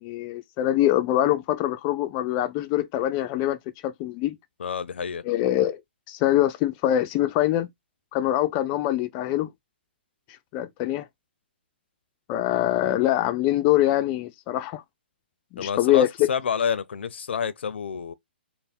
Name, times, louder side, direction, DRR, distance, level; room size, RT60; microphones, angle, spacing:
voice 1, 0.0-3.6 3.8-4.4 5.2-5.8 6.1-7.7 8.1-9.5 10.5-11.1 12.3-14.8 15.5-16.1, left 13 dB, 25° left, 0.4 m, -24 dB
voice 2, 4.6-5.2 15.6-18.1, left 7 dB, 80° left, 0.5 m, -29 dB
3.4 x 2.1 x 4.1 m
hypercardioid pair, 150°, 6 cm